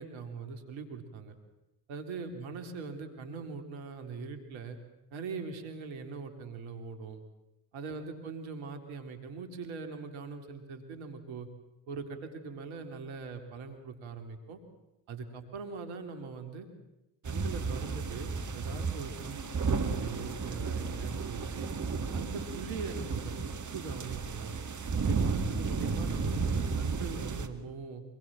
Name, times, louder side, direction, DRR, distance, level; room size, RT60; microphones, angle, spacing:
voice 1, 0.0-1.4 1.9-4.8 5.1-7.2 7.7-11.5 11.9-14.6 15.1-16.7 17.2-21.7 22.1-24.6 25.0-28.0, right 4 dB, 70° right, 7 dB, 3.7 m, -42 dB
sound 1, 17.2-27.5, right 4 dB, 35° right, 2.4 m, -33 dB
25.5 x 22.0 x 7.7 m, 0.95 s
hypercardioid pair, 55°, 48 cm